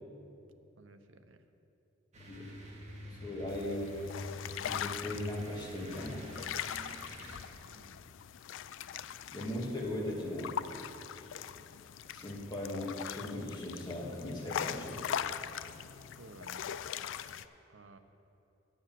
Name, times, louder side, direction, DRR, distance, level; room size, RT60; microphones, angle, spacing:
voice 1, 0.8-1.4 7.6-8.0 16.2-16.8 17.7-18.0, right 3 dB, 90° right, 8 dB, 0.7 m, -55 dB
sound 1, 2.1-7.4, left 1 dB, 35° right, 1.7 m, -47 dB
voice 2, 3.1-4.0 4.6-6.3 9.3-10.5 12.1-15.0, left 1 dB, 25° left, -3 dB, 1.9 m, -38 dB
sound 2, 3.5-17.4, left 9 dB, 80° left, 0.3 m, -41 dB
9.9 x 7.2 x 7.6 m, 2.9 s
head